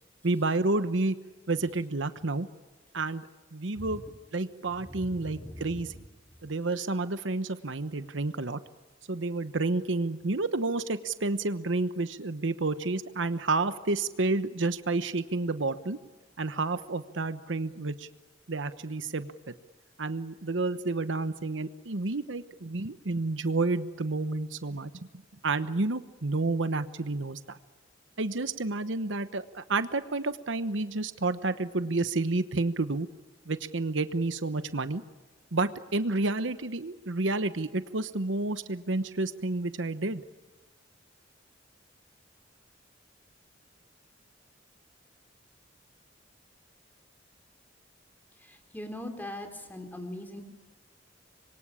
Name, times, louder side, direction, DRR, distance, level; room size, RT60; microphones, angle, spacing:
voice 1, 0.2-1.2 1.5-2.5 2.9-4.0 4.3-5.9 6.4-8.6 9.1-16.0 16.4-18.1 18.5-19.5 20.0-25.1 25.4-27.6 28.2-33.1 33.5-35.0 35.5-40.2, right 3 dB, 75° right, 12 dB, 1.1 m, -30 dB
voice 2, 3.7-4.1 4.8-6.0 48.4-50.4, left 1 dB, 10° left, 5 dB, 4.0 m, -41 dB
26.0 x 23.5 x 8.6 m, 1.2 s
head